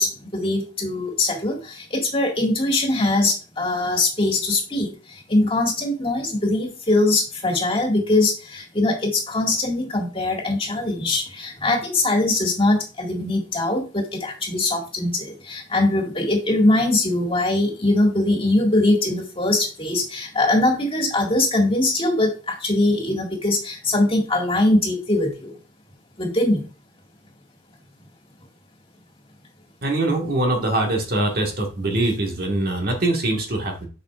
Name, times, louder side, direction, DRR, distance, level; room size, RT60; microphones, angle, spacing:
voice 1, 0.0-4.9 5.3-25.5 26.2-26.7, left 2 dB, 30° left, 0 dB, 1.8 m, -22 dB
voice 2, 29.8-33.9, right 2 dB, 55° right, 2 dB, 1.5 m, -23 dB
7.9 x 5.7 x 2.4 m, 0.34 s
head